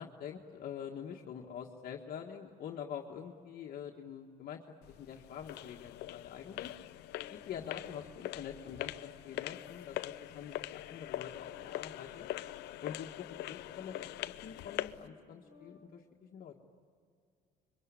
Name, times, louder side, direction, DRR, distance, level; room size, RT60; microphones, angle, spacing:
voice 1, 0.0-4.6 4.9-6.7 7.3-8.0 8.4-12.3 12.8-16.5, left 8 dB, 60° left, 0 dB, 1.7 m, -45 dB
sound 1, 4.8-15.1, left 15 dB, 80° left, 0.7 m, -43 dB
Organ, 7.0-15.9, left 4 dB, 20° right, 4.2 m, -62 dB
26.0 x 23.0 x 9.9 m, 2.3 s
cardioid pair, 110°, 17 cm